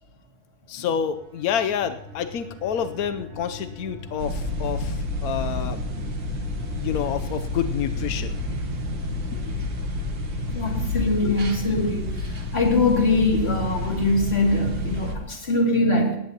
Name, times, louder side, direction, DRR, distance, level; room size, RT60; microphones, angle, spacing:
voice 1, 0.7-5.8 6.7-8.4 9.2-9.6 11.2-11.4, left 8 dB, 80° left, 9 dB, 0.8 m, -28 dB
sound 1, 1.1-14.4, left 1 dB, 75° right, 3.3 m, -40 dB
sound 2, 4.2-15.2, left 2 dB, 60° right, 2.1 m, -30 dB
voice 2, 10.5-12.3 12.5-16.2, left 2 dB, 30° left, 0 dB, 2.6 m, -22 dB
18.5 x 16.0 x 2.9 m, 0.76 s
omnidirectional pair, 2.4 m